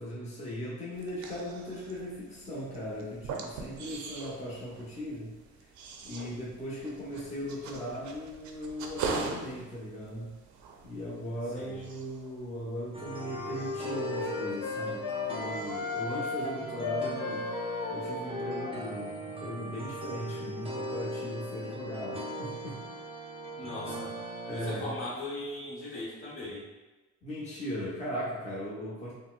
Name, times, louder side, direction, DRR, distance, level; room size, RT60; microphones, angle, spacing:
voice 1, 0.0-5.3 6.0-10.4 10.8-15.0 15.3-17.5 17.9-22.8 24.5-25.0 27.2-29.1, equal, 25° left, -7 dB, 0.9 m, -38 dB
sound 1, 0.9-15.2 15.5-16.1, right 4 dB, 70° right, 0.5 m, -42 dB
sound 2, 12.9-24.7, right 1 dB, 20° right, 0.5 m, -39 dB
sound 3, 13.2-19.0, left 4 dB, 75° left, 0.6 m, -35 dB
voice 2, 23.6-24.1 24.5-26.6, left 1 dB, 45° left, -5 dB, 1.0 m, -39 dB
4.0 x 2.2 x 2.3 m, 1.1 s
cardioid pair, 90°, 30 cm